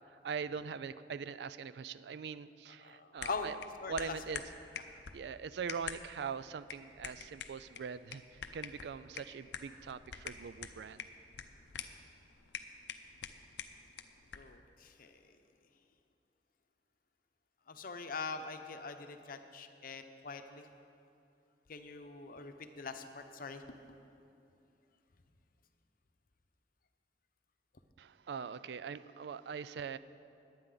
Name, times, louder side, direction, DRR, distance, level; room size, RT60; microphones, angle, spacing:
voice 1, 0.2-3.6 3.9-4.4 4.9-11.1 28.0-30.0, right 6 dB, 70° right, 15 dB, 0.4 m, -42 dB
voice 2, 2.8-3.5 3.8-4.1 14.3-15.4 17.7-20.7 21.7-23.6, left 4 dB, 55° left, 7 dB, 0.8 m, -43 dB
sound 1, 3.2-14.6, left 7 dB, 85° left, 0.7 m, -47 dB
20.5 x 8.9 x 3.9 m, 2.7 s
head